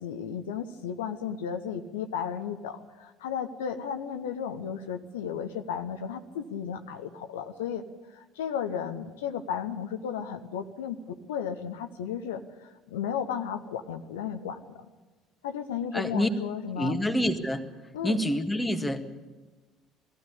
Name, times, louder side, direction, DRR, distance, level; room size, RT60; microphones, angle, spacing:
voice 1, 0.0-7.9 8.1-14.9 15.4-17.0 17.9-18.2, left 8 dB, 75° left, 7 dB, 0.9 m, -34 dB
voice 2, 15.9-16.3 16.8-17.6 18.0-19.0, left 1 dB, 10° left, 5 dB, 1.8 m, -27 dB
20.0 x 15.5 x 8.5 m, 1.2 s
figure-of-eight pair, 60°, 0 cm